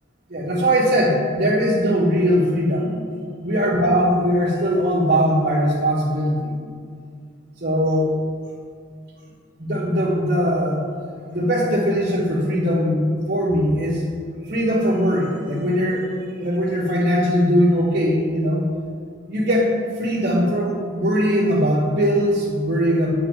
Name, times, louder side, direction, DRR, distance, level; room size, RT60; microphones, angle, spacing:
voice 1, 0.3-3.0 3.4-6.5 7.6-8.2 9.6-10.8 11.3-13.0 13.3-14.0 14.5-16.1 16.4-18.7 19.3-23.1, equal, 45° right, -8 dB, 1.2 m, -20 dB
8.6 x 4.1 x 7.1 m, 2.2 s
head